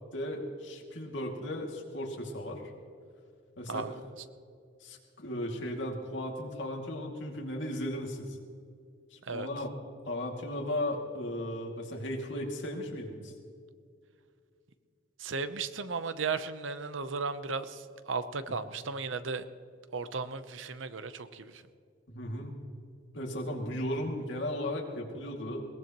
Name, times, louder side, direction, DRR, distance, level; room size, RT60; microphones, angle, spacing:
voice 1, 0.1-2.6 3.6-3.8 4.8-8.4 9.1-9.7 10.0-13.3 22.1-22.6 23.1-25.7, left 1 dB, 70° left, 0 dB, 2.4 m, -36 dB
voice 2, 15.2-19.4 19.9-21.6, right 4 dB, 80° right, 12 dB, 0.8 m, -35 dB
21.5 x 18.5 x 3.0 m, 2.3 s
head